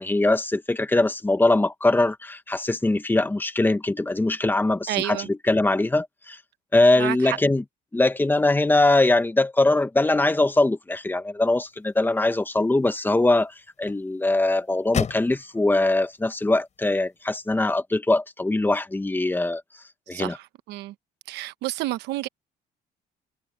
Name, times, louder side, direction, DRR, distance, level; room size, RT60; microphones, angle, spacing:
voice 1, 0.0-6.4 6.7-7.6 7.9-19.6 20.1-20.4, left 2 dB, 10° left, 1.3 m, -22 dB
voice 2, 4.9-5.3 7.0-7.4 20.1-20.9 21.3-22.3, right 16 dB, 85° right, 1.0 m, -30 dB
sound 1, 11.4-17.6, left 7 dB, 45° left, 5.3 m, -38 dB
cardioid pair, 110°, 17 cm